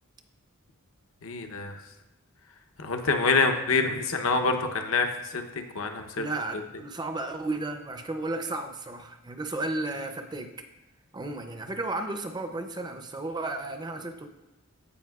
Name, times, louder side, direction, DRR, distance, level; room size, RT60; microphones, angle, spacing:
voice 1, 1.2-1.7 2.8-6.3, left 4 dB, 65° left, 5 dB, 0.8 m, -26 dB
voice 2, 6.2-10.7 11.1-14.3, right 2 dB, 20° right, 6 dB, 0.5 m, -33 dB
15.0 x 5.2 x 2.4 m, 1.0 s
head